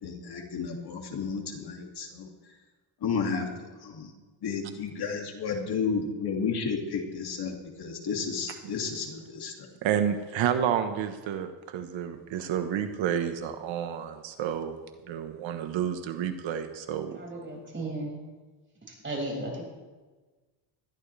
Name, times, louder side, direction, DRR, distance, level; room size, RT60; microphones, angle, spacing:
voice 1, 0.0-2.3 3.0-4.1 4.4-9.7, left 5 dB, 55° left, 1 dB, 2.6 m, -32 dB
voice 2, 9.8-14.8 15.1-17.2, right 9 dB, 85° right, 7 dB, 1.3 m, -30 dB
voice 3, 17.1-18.2 18.9-19.6, right 1 dB, 25° right, -2 dB, 6.2 m, -35 dB
20.5 x 14.0 x 3.4 m, 1.3 s
cardioid pair, 115°, 45 cm